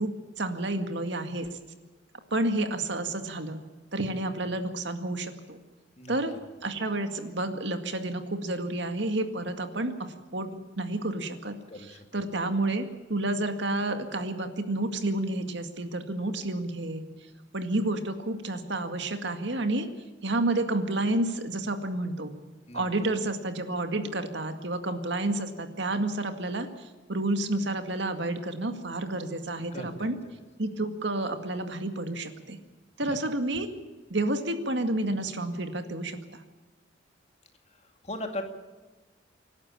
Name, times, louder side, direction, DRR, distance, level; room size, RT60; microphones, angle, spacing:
voice 1, 0.0-1.5 2.3-3.6 3.9-5.6 6.1-6.3 6.6-9.9 10.3-17.0 17.5-19.9 20.2-22.3 22.7-30.2 30.6-32.6 33.0-33.7 34.1-36.4, right 2 dB, 60° right, 7 dB, 2.1 m, -30 dB
voice 2, 11.7-12.2 22.7-22.8 29.7-30.3 33.1-33.2 38.0-38.4, left 1 dB, 35° left, 5 dB, 2.4 m, -38 dB
26.5 x 12.0 x 8.7 m, 1.3 s
head